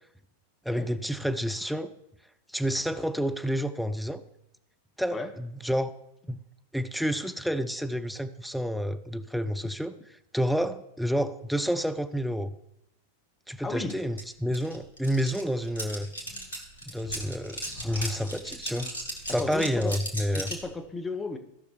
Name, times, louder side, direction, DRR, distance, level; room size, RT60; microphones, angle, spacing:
voice 1, 0.7-1.9 2.5-4.2 5.0-5.9 6.3-6.4 6.7-9.9 10.3-12.5 13.5-16.1 16.9-18.9 19.3-20.5, equal, ahead, 9 dB, 0.5 m, -29 dB
voice 2, 13.6-13.9 19.4-20.0 20.3-21.4, left 3 dB, 15° left, 6 dB, 0.9 m, -34 dB
sound 1, 13.9-14.0 14.2-20.7, equal, 75° left, 1.9 m, -37 dB
16.5 x 5.8 x 3.0 m, 0.82 s
figure-of-eight pair, 90°, 0 cm